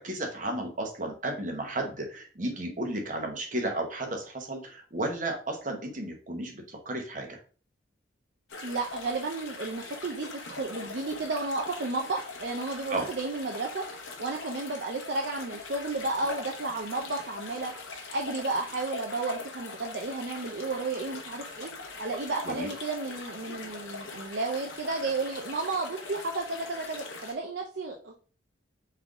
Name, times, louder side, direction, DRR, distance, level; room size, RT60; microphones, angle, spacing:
voice 1, 0.0-7.4 12.9-13.1 22.4-22.7, right 1 dB, 40° right, 3 dB, 0.9 m, -33 dB
sound 1, 8.5-27.3, left 4 dB, 85° left, 0.9 m, -42 dB
voice 2, 8.6-21.7 22.0-28.1, right 3 dB, 60° right, 1 dB, 0.5 m, -33 dB
3.7 x 3.4 x 3.5 m, 0.39 s
head